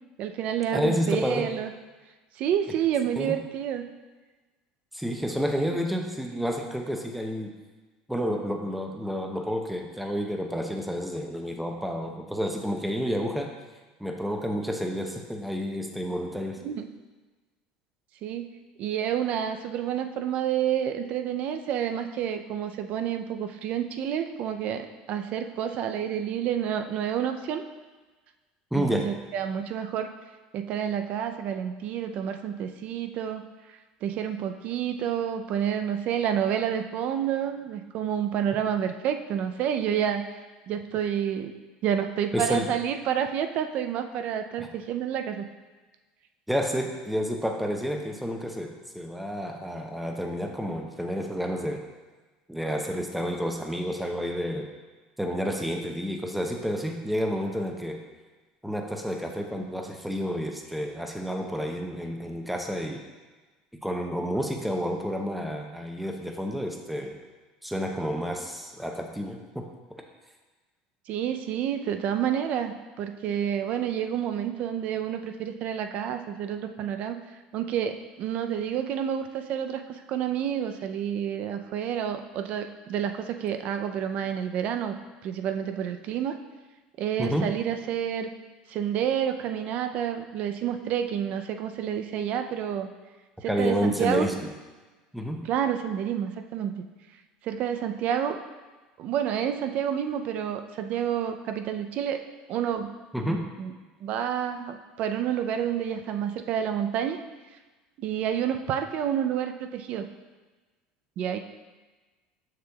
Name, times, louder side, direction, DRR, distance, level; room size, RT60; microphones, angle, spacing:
voice 1, 0.2-1.7 2.4-3.8 16.6-16.9 18.2-18.5 18.8-27.6 28.8-30.1 30.5-33.5 34.0-40.2 40.7-41.5 41.8-45.5 71.1-77.2 77.5-84.9 85.2-86.4 87.0-88.3 88.7-92.9 93.4-94.3 95.5-96.7 97.4-98.4 99.0-102.2 102.5-103.7 104.0-107.2 108.0-110.1 111.2-111.4, right 9 dB, 50° right, 7 dB, 0.5 m, -29 dB
voice 2, 0.7-1.5 3.2-3.4 4.9-7.5 8.1-13.5 14.0-16.6 28.7-29.1 42.3-42.7 44.6-44.7 46.5-51.8 52.5-54.7 55.2-58.0 58.6-63.0 63.8-67.2 67.6-70.0 87.2-87.5 93.5-94.5 95.1-95.4 103.1-103.4, equal, ahead, 3 dB, 0.7 m, -30 dB
6.8 x 6.5 x 2.3 m, 1.3 s
supercardioid pair, 130°, 3 cm